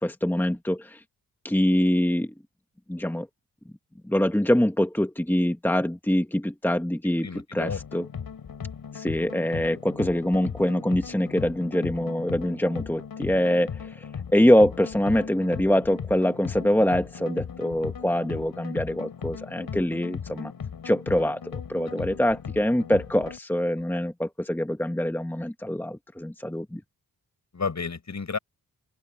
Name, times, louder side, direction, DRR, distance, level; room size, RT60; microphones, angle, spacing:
voice 1, 0.0-1.0 1.4-2.3 2.9-3.3 4.0-8.0 8.9-14.0 14.3-20.5 20.8-26.8, equal, 5° left, 1.6 m, -24 dB
voice 2, 7.2-7.8 22.0-22.1 23.8-23.9 27.5-28.4, left 5 dB, 50° left, 6.5 m, -32 dB
sound 1, 7.6-23.4, left 7 dB, 70° left, 4.9 m, -37 dB
open air
cardioid pair, 55°, 36 cm